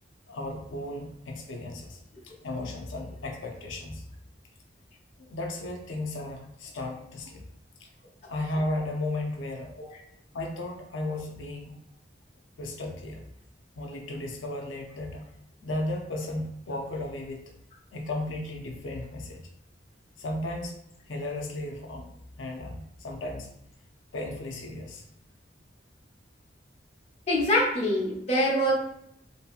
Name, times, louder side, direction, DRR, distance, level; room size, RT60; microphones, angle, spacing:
voice 1, 0.3-2.0 2.2-4.0 5.2-7.4 8.3-9.7 10.3-11.7 12.6-13.2 13.8-15.3 15.6-17.4 17.9-19.4 20.2-20.7 21.1-22.1 22.4-22.7 23.0-23.5 24.1-25.0, left 1 dB, 80° left, 1 dB, 0.5 m, -34 dB
voice 2, 27.3-28.7, equal, 35° left, -3 dB, 0.6 m, -24 dB
2.7 x 2.6 x 2.4 m, 0.75 s
head